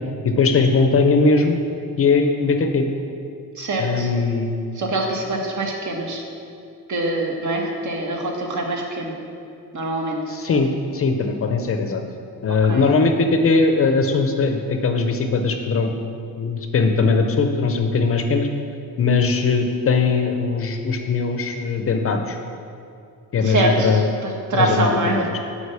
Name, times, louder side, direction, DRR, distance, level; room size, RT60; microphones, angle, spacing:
voice 1, 0.2-1.6 2.0-2.9 3.8-4.5 10.3-12.0 12.4-15.9 16.4-18.5 19.0-22.4 23.3-24.1 24.5-25.4, left 4 dB, 40° left, 5 dB, 0.5 m, -20 dB
voice 2, 3.6-4.1 4.7-6.2 6.9-9.1 9.7-10.2 12.5-12.9 23.4-25.2, right 2 dB, 50° right, 1 dB, 1.3 m, -24 dB
8.1 x 5.1 x 6.7 m, 2.5 s
wide cardioid pair, 175°, 37 cm